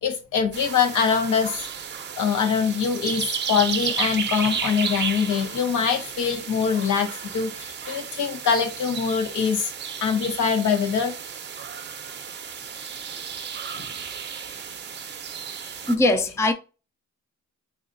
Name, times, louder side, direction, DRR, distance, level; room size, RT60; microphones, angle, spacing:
voice 1, 0.0-1.7 2.2-9.7 10.0-11.1, left 6 dB, 75° left, 0.9 m, -23 dB
sound 1, 0.5-16.0, right 7 dB, 35° right, 0.6 m, -33 dB
voice 2, 15.9-16.5, left 2 dB, 10° left, 0.4 m, -20 dB
4.7 x 2.8 x 2.6 m
cardioid pair, 105°, 31 cm